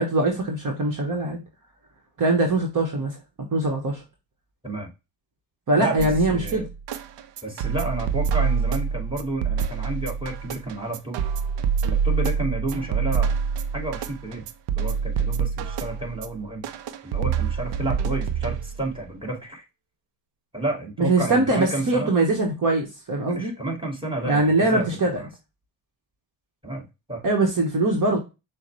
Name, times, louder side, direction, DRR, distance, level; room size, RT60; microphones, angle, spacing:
voice 1, 0.0-1.4 2.2-3.2 3.5-4.0 5.7-6.7 21.0-23.5 24.3-25.2 27.2-28.2, right 2 dB, 40° right, 1.3 m, -22 dB
voice 2, 5.8-6.7 7.4-11.3 11.8-13.4 13.7-14.5 14.7-16.7 17.0-19.6 20.5-22.1 23.3-25.3 26.6-26.8 27.1-27.2, right 2 dB, 10° right, 2.2 m, -31 dB
sound 1, 6.0-19.0, right 6 dB, 65° right, 0.7 m, -26 dB
6.2 x 2.3 x 3.1 m
hypercardioid pair, 55°, 47 cm